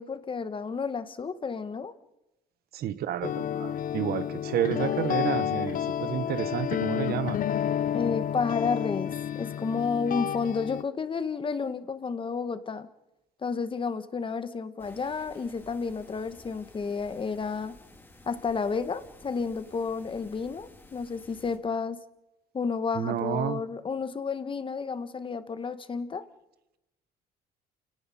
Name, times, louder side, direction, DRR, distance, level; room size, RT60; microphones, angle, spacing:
voice 1, 0.0-1.9 7.9-12.9 13.4-17.7 18.2-22.0 22.5-26.3, left 5 dB, 30° left, 12 dB, 1.7 m, -31 dB
voice 2, 2.7-7.4 22.9-23.6, right 10 dB, 65° right, 15 dB, 1.3 m, -30 dB
sound 1, 3.2-10.8, left 10 dB, 55° left, 0.9 m, -30 dB
sound 2, 14.8-21.6, left 1 dB, 10° left, 3.0 m, -53 dB
28.5 x 18.0 x 7.2 m, 0.95 s
cardioid pair, 110°, 17 cm